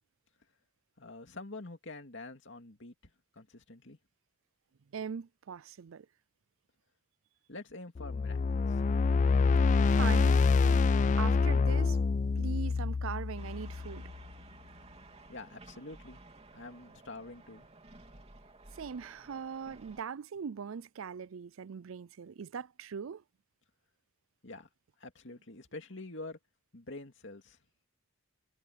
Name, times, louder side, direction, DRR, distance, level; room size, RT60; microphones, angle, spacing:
voice 1, 1.0-2.9 3.3-4.0 7.5-8.8 15.3-16.2 16.5-17.7 24.4-24.7 25.0-26.4 26.7-27.6, left 2 dB, 65° left, 2.5 m, -46 dB
voice 2, 4.9-6.1 9.8-10.8 11.2-12.0 12.4-14.1 18.7-23.2, right 6 dB, 80° right, 0.5 m, -41 dB
sound 1, 8.0-14.2, left 4 dB, 35° left, 0.3 m, -26 dB
sound 2, 13.4-20.0, right 2 dB, 30° right, 2.9 m, -54 dB
head